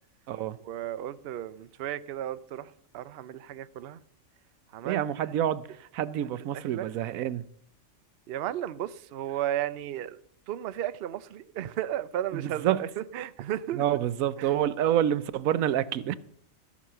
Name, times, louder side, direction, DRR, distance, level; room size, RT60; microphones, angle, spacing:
voice 1, 0.6-4.0 4.7-5.0 6.7-6.9 8.3-13.8 14.4-14.5, right 12 dB, 60° right, 0.7 m, -34 dB
voice 2, 4.8-7.4 12.3-12.8 13.7-16.2, right 11 dB, 90° right, 1.1 m, -28 dB
14.0 x 6.4 x 6.7 m
omnidirectional pair, 1.4 m